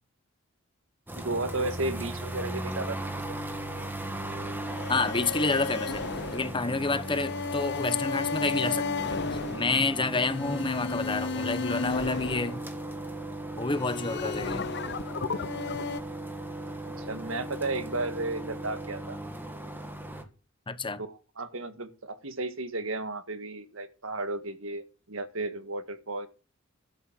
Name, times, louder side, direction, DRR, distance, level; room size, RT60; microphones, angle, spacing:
sound 1, 1.1-20.2, right 1 dB, 10° right, 1.9 m, -38 dB
voice 1, 1.1-3.4 16.9-19.2 21.1-26.3, right 2 dB, 75° right, 1.8 m, -34 dB
sound 2, 4.6-13.1 13.7-16.0, left 4 dB, 55° left, 0.8 m, -34 dB
voice 2, 4.9-6.0 6.3-12.6 13.6-14.7 20.7-21.0, left 3 dB, 25° left, 1.1 m, -29 dB
12.0 x 7.2 x 7.6 m
head